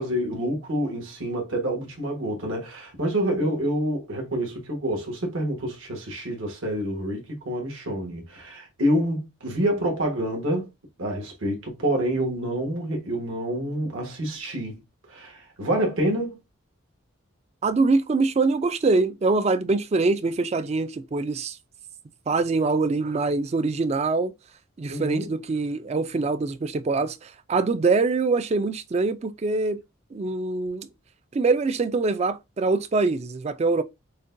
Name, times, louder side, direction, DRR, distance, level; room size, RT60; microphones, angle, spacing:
voice 1, 0.0-10.7 11.0-14.8 15.1-16.4 24.9-25.3, equal, 75° right, 1.3 m, -27 dB
voice 2, 17.6-21.6 22.3-24.3 24.8-29.8 30.1-30.9 31.3-33.8, right 3 dB, 30° right, 0.3 m, -24 dB
6.3 x 2.2 x 2.5 m
head